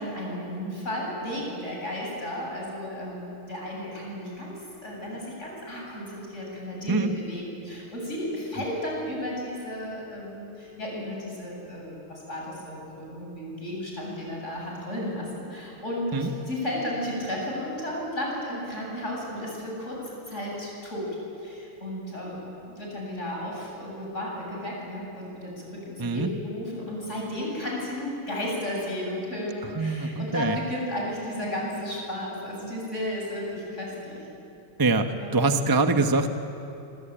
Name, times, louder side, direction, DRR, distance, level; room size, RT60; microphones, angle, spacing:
voice 1, 0.0-21.1 21.4-34.2 35.1-35.4, left 1 dB, 30° left, -2 dB, 8.3 m, -33 dB
voice 2, 26.0-26.3 29.7-30.6 34.8-36.3, right 3 dB, 20° right, 6 dB, 0.6 m, -24 dB
26.5 x 25.0 x 9.0 m, 2.9 s
omnidirectional pair, 2.4 m